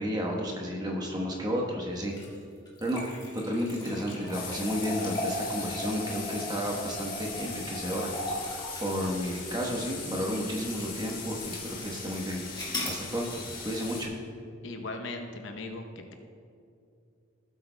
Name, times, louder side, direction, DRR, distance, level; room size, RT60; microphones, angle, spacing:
voice 1, 0.0-2.1 2.8-3.0 3.3-8.1 8.8-12.4 12.8-14.1, equal, 20° right, -1 dB, 1.2 m, -32 dB
sound 1, 2.0-10.5 11.0-11.1 12.5-13.0, left 1 dB, 20° left, 1.8 m, -38 dB
sound 2, 4.3-14.1, left 4 dB, 45° left, 1.6 m, -40 dB
voice 2, 14.6-15.9, left 2 dB, 60° left, 4 dB, 0.8 m, -37 dB
16.0 x 8.4 x 2.2 m, 2.5 s
head